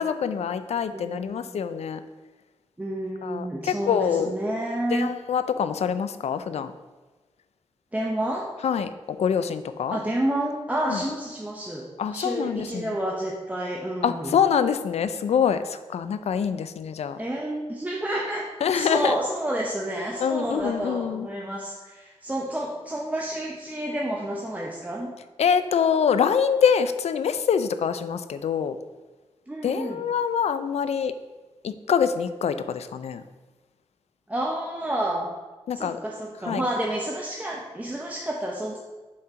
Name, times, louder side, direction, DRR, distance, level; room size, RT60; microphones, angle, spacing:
voice 1, 0.0-2.0 3.2-4.3 4.9-6.7 8.6-8.9 9.2-10.0 10.9-11.0 12.0-12.9 14.0-17.2 18.6-19.2 20.2-21.3 25.4-28.8 29.6-31.1 31.6-33.2 35.7-36.0 36.5-36.6, left 7 dB, 80° left, 11 dB, 0.5 m, -25 dB
voice 2, 0.9-1.5 2.8-5.1 7.9-8.5 9.9-14.4 17.2-18.5 18.7-25.1 29.5-30.0 34.3-35.3 35.7-38.8, right 1 dB, 15° right, -2 dB, 0.9 m, -29 dB
7.4 x 4.3 x 5.0 m, 1.3 s
cardioid pair, 85°, 11 cm